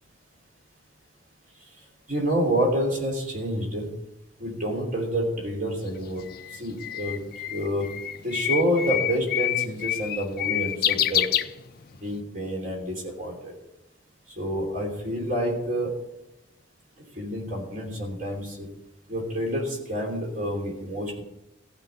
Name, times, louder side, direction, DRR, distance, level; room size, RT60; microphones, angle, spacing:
voice 1, 2.1-3.9 4.4-6.2 6.5-7.2 7.5-7.9 8.2-11.3 12.0-13.5 14.4-15.9 17.1-18.7 19.1-21.2, equal, 40° right, 0 dB, 3.3 m, -28 dB
Bird, 5.9-12.1, left 11 dB, 45° left, 0.5 m, -27 dB
14.5 x 5.4 x 9.2 m, 0.90 s
head